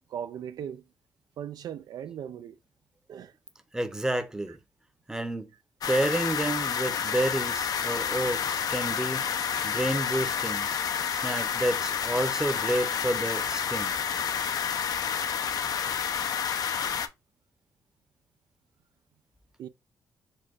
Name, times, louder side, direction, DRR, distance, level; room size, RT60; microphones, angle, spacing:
voice 1, 0.1-0.8 1.4-2.6 3.1-3.3 19.6-19.7, right 9 dB, 70° right, 0.4 m, -38 dB
voice 2, 3.7-4.6 5.1-5.5 5.9-9.2 9.6-10.7 11.1-14.0, right 1 dB, 10° right, 0.7 m, -30 dB
sound 1, 5.8-17.1, left 7 dB, 65° left, 0.6 m, -29 dB
4.4 x 2.3 x 4.6 m
cardioid pair, 100°, 7 cm